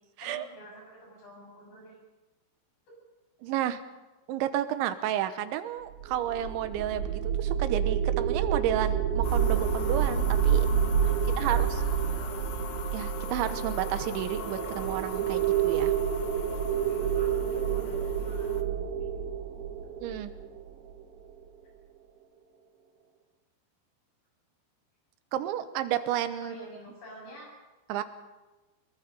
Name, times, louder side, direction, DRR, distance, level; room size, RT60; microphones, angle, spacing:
voice 1, 0.2-2.0 11.2-12.4 16.7-19.1 26.4-27.5, equal, 70° left, -1 dB, 9.3 m, -48 dB
voice 2, 3.4-3.8 4.3-10.7 11.4-11.7 12.9-15.9 20.0-20.3 25.3-26.5 27.9-28.0, right 11 dB, 90° right, 11 dB, 3.4 m, -31 dB
sound 1, 6.0-21.2, right 8 dB, 70° right, 3.6 m, -28 dB
sound 2, 9.2-18.6, left 9 dB, 90° left, 1.6 m, -42 dB
23.0 x 22.0 x 5.4 m, 1.1 s
omnidirectional pair, 5.2 m